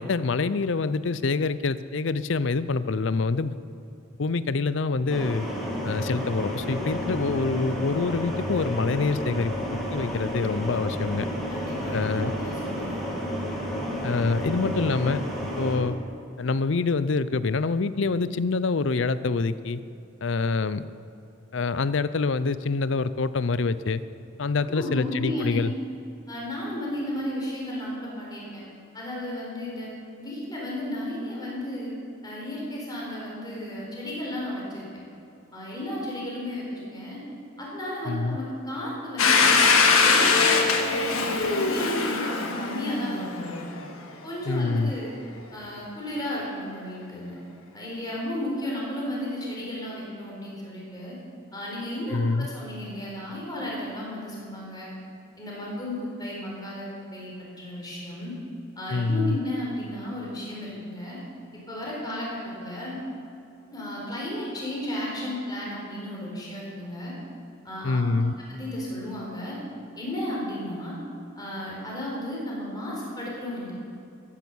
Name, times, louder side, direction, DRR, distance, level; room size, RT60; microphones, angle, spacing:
voice 1, 0.0-3.5 4.2-5.5 5.8-11.3 11.9-12.3 14.0-15.2 15.6-16.0 16.4-19.8 20.2-20.8 21.5-24.0 24.4-25.7 38.1-38.4 44.5-44.9 52.1-52.5 58.9-59.4 67.8-68.3, left 4 dB, 60° left, 15 dB, 0.5 m, -26 dB
sound 1, 5.1-15.8, equal, ahead, 2.7 m, -31 dB
voice 2, 11.5-13.0 24.7-25.7 26.3-28.6 28.9-29.9 30.2-31.9 32.2-34.8 35.5-37.2 37.6-39.6 39.9-43.6 44.2-45.1 45.5-47.4 47.7-51.2 51.5-54.9 55.4-58.3 58.8-61.2 61.7-63.0 63.7-67.1 67.6-68.1 68.5-69.6 70.0-71.0 71.4-73.7, left 1 dB, 20° left, -4 dB, 4.3 m, -33 dB
Domestic sounds home sounds, 39.2-43.8, left 4 dB, 85° left, 1.6 m, -22 dB
14.0 x 11.0 x 7.1 m, 2.7 s
head